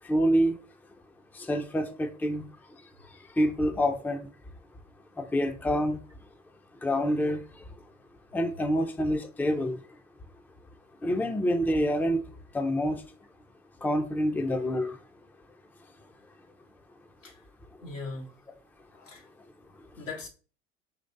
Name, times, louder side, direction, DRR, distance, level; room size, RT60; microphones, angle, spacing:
voice 1, 0.1-0.5 1.3-2.5 3.4-4.3 5.2-6.0 6.8-7.4 8.3-9.8 11.0-12.2 12.5-13.0 13.8-15.0, equal, 5° left, 0.6 m, -26 dB
voice 2, 17.8-18.4 18.9-19.3 19.9-20.3, left 3 dB, 85° left, 1.4 m, -39 dB
4.0 x 3.1 x 3.9 m
hypercardioid pair, 75°, 37 cm